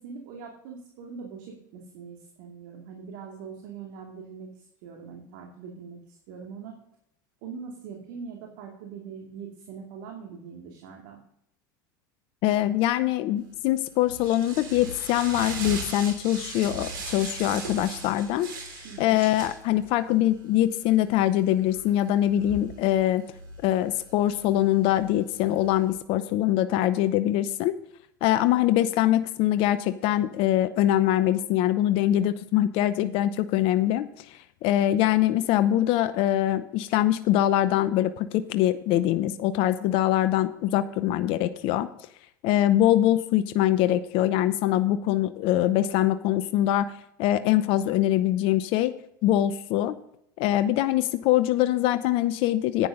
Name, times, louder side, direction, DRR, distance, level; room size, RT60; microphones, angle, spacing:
voice 1, 0.0-6.8 7.4-11.2 18.8-19.2, right 6 dB, 70° right, 1 dB, 2.5 m, -42 dB
voice 2, 12.4-18.5 18.8-23.2 23.6-27.7 28.2-41.9 42.4-46.9 47.2-48.9 49.2-50.0 50.4-52.9, left 13 dB, 60° left, 12 dB, 0.7 m, -23 dB
sound 1, 13.5-25.9, right 2 dB, 85° right, 3.3 m, -40 dB
11.0 x 9.5 x 3.8 m, 0.74 s
hypercardioid pair, 95°, 11 cm